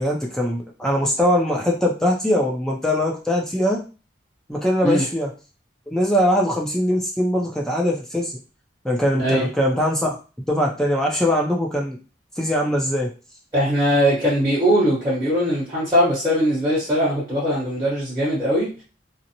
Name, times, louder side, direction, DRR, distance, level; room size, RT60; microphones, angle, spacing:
voice 1, 0.0-3.8 4.5-5.3 5.9-8.4 8.8-10.2 10.5-12.0 12.4-13.1, equal, 5° left, -1 dB, 0.5 m, -21 dB
voice 2, 13.5-18.7, equal, 15° right, -11 dB, 1.2 m, -20 dB
2.6 x 2.1 x 2.9 m, 0.34 s
head